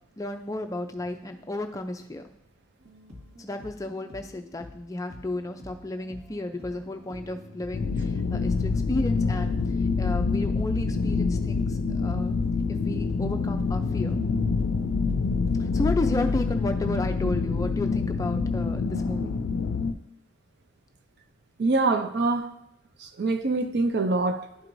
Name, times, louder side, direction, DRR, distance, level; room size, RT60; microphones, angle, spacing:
voice 1, 0.2-2.2 3.4-9.5 10.0-12.4 12.7-14.2 15.6-19.3, left 2 dB, 15° left, 0.4 m, -33 dB
sound 1, 2.8-16.0, equal, 75° right, 1.7 m, -46 dB
sound 2, 7.7-19.9, left 4 dB, 75° left, 0.4 m, -26 dB
voice 2, 21.6-22.5 23.0-24.5, right 3 dB, 50° right, 0.4 m, -24 dB
11.5 x 4.6 x 2.6 m
head